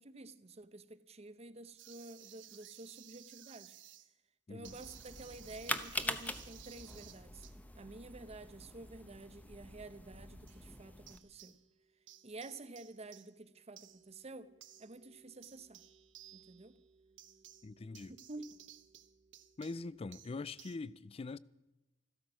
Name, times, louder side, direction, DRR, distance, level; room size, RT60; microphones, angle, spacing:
voice 1, 0.0-3.8 4.5-7.5 7.7-11.6 12.2-14.5 14.8-15.8 16.3-16.7 18.1-18.5, right 2 dB, 35° right, 0.8 m, -50 dB
sound 1, 1.8-4.1 4.6-7.6 10.5-10.7 11.1-11.8 12.1-20.8, right 12 dB, 75° right, 0.9 m, -58 dB
sound 2, 4.6-11.2, left 1 dB, 10° left, 0.8 m, -44 dB
voice 2, 17.6-18.1 19.6-21.4, left 3 dB, 30° left, 0.4 m, -43 dB
14.0 x 13.0 x 6.1 m
head